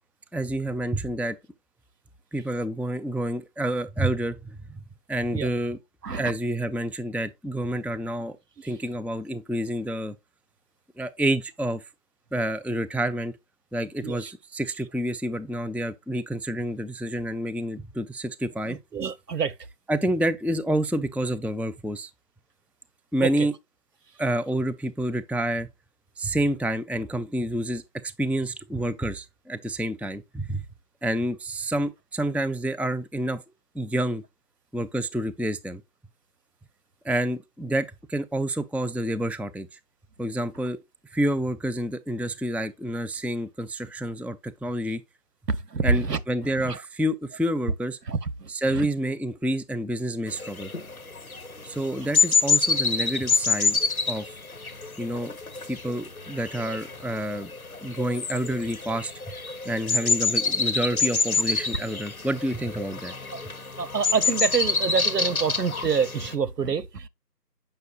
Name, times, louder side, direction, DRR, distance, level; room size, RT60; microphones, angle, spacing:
voice 1, 0.3-1.4 2.3-4.6 5.1-5.8 6.2-8.4 8.6-10.2 11.0-11.8 12.3-13.4 13.7-18.8 19.9-22.1 23.1-23.5 24.2-25.7 26.2-30.6 31.0-33.4 33.7-34.2 34.7-35.8 37.0-39.8 40.2-40.8 41.1-45.0 45.8-48.0 48.5-50.7 51.6-53.8 54.1-54.3 55.0-55.3 55.7-57.5 57.8-59.1 59.7-63.1, right 1 dB, 5° right, 0.4 m, -28 dB
voice 2, 18.7-19.5 23.2-23.5 45.5-46.8 48.1-48.9 63.3-63.4 63.8-67.1, right 5 dB, 75° right, 0.8 m, -27 dB
sound 1, 50.3-66.3, left 4 dB, 60° left, 1.1 m, -27 dB
7.8 x 5.5 x 2.3 m
figure-of-eight pair, 170°, 49 cm